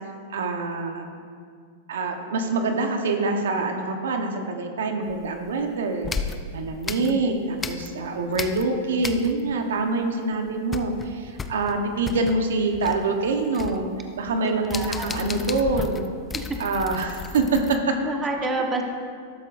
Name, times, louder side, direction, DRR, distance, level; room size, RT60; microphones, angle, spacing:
voice 1, 0.3-1.0 1.9-13.9 14.2-16.1 16.6-17.9 18.7-18.8, right 3 dB, 85° right, 4 dB, 1.1 m, -25 dB
sound 1, 5.1-5.6 6.0-8.1 8.3-9.6 9.9-10.0 10.3-17.8, left 4 dB, 15° left, 0.5 m, -34 dB
voice 2, 14.4-15.4 16.3-16.5 18.0-18.8, right 2 dB, 15° right, 1 dB, 1.3 m, -29 dB
13.0 x 12.5 x 2.6 m, 2.1 s
hypercardioid pair, 130°, 0 cm